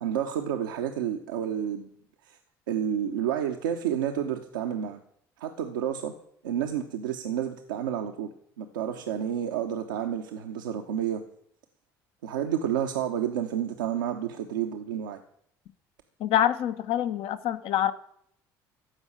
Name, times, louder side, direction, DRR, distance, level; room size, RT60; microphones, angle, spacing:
voice 1, 0.0-1.9 2.2-2.4 2.7-5.0 5.4-6.1 6.4-8.3 8.6-11.2 12.2-15.2, right 9 dB, 85° right, 4 dB, 0.9 m, -30 dB
voice 2, 16.2-17.9, left 11 dB, 65° left, 12 dB, 1.0 m, -25 dB
15.0 x 5.5 x 9.8 m, 0.70 s
hypercardioid pair, 60°, 10 cm